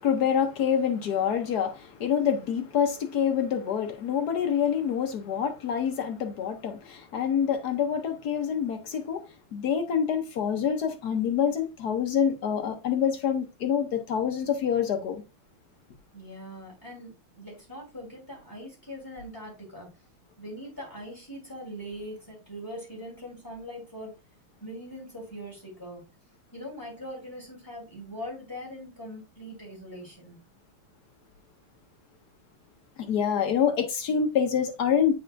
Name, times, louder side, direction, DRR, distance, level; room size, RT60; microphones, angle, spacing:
voice 1, 0.0-9.3 9.5-15.2 33.0-35.1, left 8 dB, 60° left, 1.2 m, -26 dB
voice 2, 16.1-19.9 20.4-24.1 24.6-26.0 26.5-30.4, equal, 10° left, 3.1 m, -41 dB
8.8 x 4.4 x 2.5 m
omnidirectional pair, 2.4 m